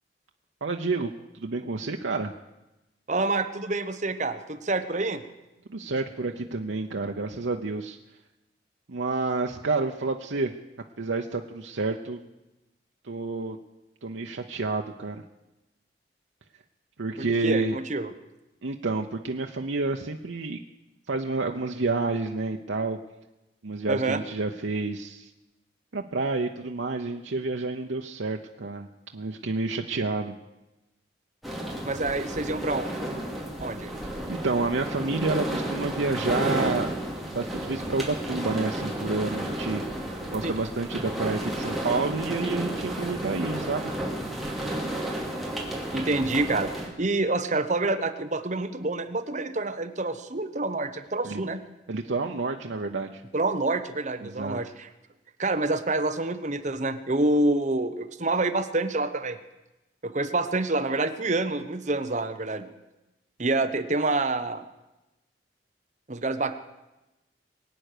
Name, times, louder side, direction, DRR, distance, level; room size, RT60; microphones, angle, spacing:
voice 1, 0.6-2.3 5.7-8.0 8.9-10.5 11.0-12.2 13.0-13.6 14.0-15.2 17.0-17.8 18.6-20.6 21.1-23.0 23.6-25.3 25.9-28.9 29.1-30.3 34.3-36.9 37.3-39.8 40.3-43.9 51.2-51.4 51.9-53.2 54.2-54.6, right 3 dB, 90° right, 3 dB, 0.8 m, -29 dB
voice 2, 3.1-5.2 17.2-18.1 23.9-24.2 31.8-32.9 33.6-33.9 40.4-40.5 45.9-51.6 53.3-54.9 55.4-59.4 60.0-62.7 63.4-64.6 66.1-66.6, right 2 dB, 40° right, 9 dB, 1.0 m, -27 dB
sound 1, 31.4-46.9, right 1 dB, ahead, 2.6 m, -32 dB
22.5 x 9.2 x 6.7 m, 1.0 s
head